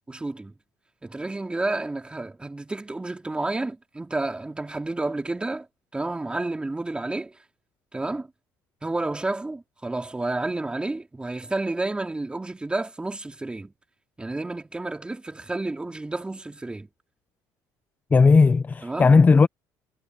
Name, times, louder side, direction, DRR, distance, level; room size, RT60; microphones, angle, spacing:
voice 1, 0.1-0.5 1.0-5.7 5.9-7.3 7.9-8.3 8.8-13.7 14.2-16.9 18.8-19.2, right 2 dB, 15° right, 3.8 m, -30 dB
voice 2, 18.1-19.5, left 4 dB, 20° left, 0.6 m, -16 dB
cardioid pair, 100°, 8 cm